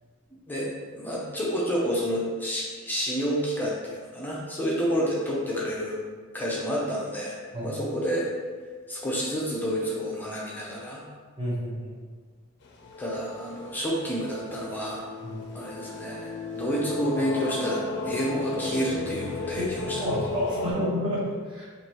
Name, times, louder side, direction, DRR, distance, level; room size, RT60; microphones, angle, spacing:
voice 1, 0.5-6.0 6.3-7.4 7.6-8.3 8.9-11.0 13.0-15.0 15.5-20.1, equal, 10° left, -5 dB, 0.6 m, -29 dB
voice 2, 11.4-11.9 15.2-15.4 19.6-21.7, equal, 25° right, -7 dB, 1.0 m, -30 dB
sound 1, 12.6-20.7, left 3 dB, 55° left, 0.4 m, -35 dB
4.7 x 2.6 x 2.9 m, 1.5 s
head